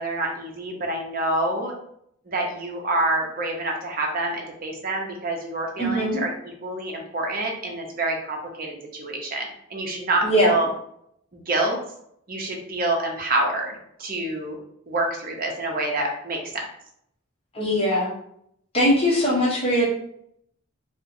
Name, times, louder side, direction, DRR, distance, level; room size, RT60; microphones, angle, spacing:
voice 1, 0.0-1.8 2.3-10.7 11.3-11.8 12.3-13.7 14.0-14.6 14.9-16.7, right 2 dB, 40° right, 1 dB, 0.7 m, -27 dB
voice 2, 5.8-6.2 10.2-10.5 17.5-18.1 18.7-19.9, equal, 25° left, -3 dB, 0.8 m, -21 dB
4.3 x 2.1 x 2.6 m, 0.71 s
head